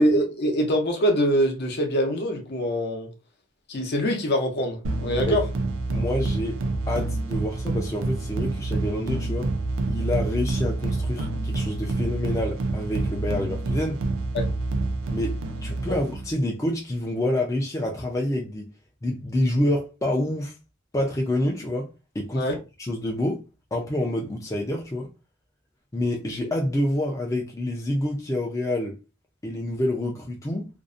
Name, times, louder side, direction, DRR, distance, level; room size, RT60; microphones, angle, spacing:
voice 1, 0.0-3.1 3.7-5.4 14.3-14.5 15.9-16.0 22.3-22.6, equal, 55° left, 0.7 m, -24 dB
sound 1, 4.8-16.3, right 2 dB, 85° right, 0.4 m, -28 dB
voice 2, 5.9-6.6 6.9-9.5 9.9-14.0 15.1-15.4 15.6-18.7 19.0-20.5 20.9-21.9 22.1-22.5 22.8-23.4 23.7-25.1 25.9-28.9 29.4-30.7, left 1 dB, 15° left, 0.4 m, -27 dB
2.6 x 2.0 x 2.4 m
head